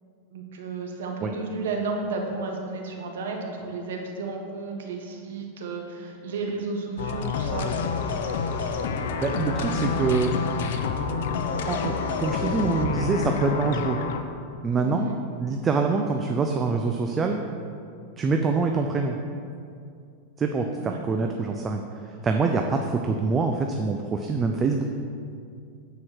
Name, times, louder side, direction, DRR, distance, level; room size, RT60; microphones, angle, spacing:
voice 1, 0.3-7.7 9.5-10.1 14.7-15.2 20.8-21.0, right 3 dB, 85° right, 1 dB, 1.5 m, -33 dB
sound 1, 7.0-14.2, left 5 dB, 75° left, 0.7 m, -28 dB
voice 2, 9.2-10.4 11.7-14.0 14.6-15.1 15.4-17.4 18.2-19.2 20.4-21.8 22.2-24.8, right 4 dB, 20° right, 3 dB, 0.5 m, -25 dB
9.5 x 4.7 x 6.4 m, 2.3 s
supercardioid pair, 145°, 0 cm